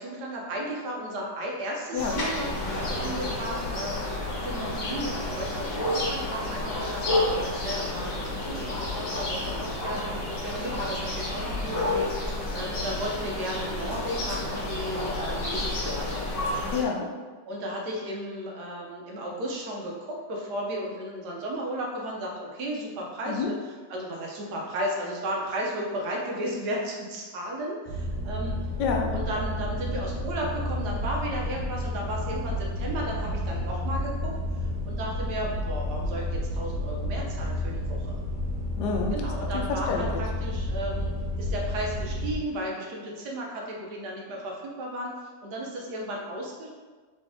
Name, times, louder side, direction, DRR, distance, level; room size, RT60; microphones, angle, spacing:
voice 1, 0.0-10.1 10.4-12.1 12.5-16.2 17.5-28.6 29.1-34.4 34.9-38.2 39.1-46.7, right 1 dB, 70° right, -2 dB, 1.3 m, -34 dB
sound 1, 2.0-16.8, left 1 dB, 50° left, 1.2 m, -30 dB
voice 2, 16.7-17.1 23.3-23.5 28.8-29.1 38.8-39.2 39.5-39.6 39.9-40.2, left 5 dB, 75° left, 2 dB, 1.2 m, -28 dB
sound 2, 27.9-42.3, left 1 dB, 90° right, 1.4 m, -31 dB
4.0 x 3.1 x 3.5 m, 1.4 s
omnidirectional pair, 1.9 m